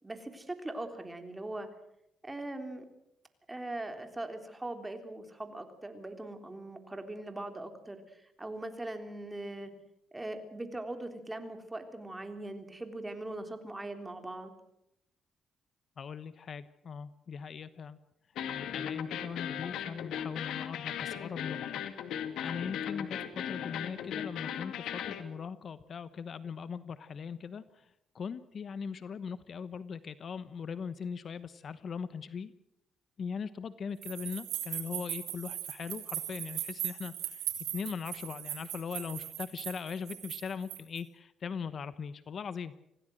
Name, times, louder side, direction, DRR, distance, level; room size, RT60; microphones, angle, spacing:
voice 1, 0.0-1.7 2.2-2.9 3.5-9.7 10.1-14.5, right 2 dB, 15° right, 6 dB, 3.6 m, -41 dB
voice 2, 16.0-18.0 18.5-21.8 22.1-32.5 33.2-37.4 37.7-42.8, left 6 dB, 50° left, 14 dB, 1.1 m, -40 dB
sound 1, 18.4-25.2, left 9 dB, 80° left, 2.2 m, -37 dB
sound 2, 34.0-41.0, right 12 dB, 85° right, 4.6 m, -39 dB
26.0 x 17.5 x 7.8 m, 0.83 s
cardioid pair, 105°, 0 cm